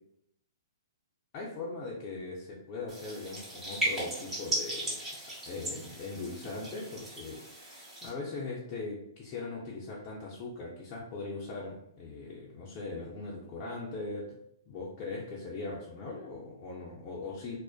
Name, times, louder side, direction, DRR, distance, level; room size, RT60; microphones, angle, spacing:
voice 1, 1.3-5.0 5.5-14.4 14.7-17.6, left 3 dB, 35° left, -5 dB, 0.5 m, -40 dB
sound 1, 2.9-8.1, right 1 dB, 10° right, 0.9 m, -37 dB
2.5 x 2.1 x 2.3 m, 0.76 s
hypercardioid pair, 125°, 2 cm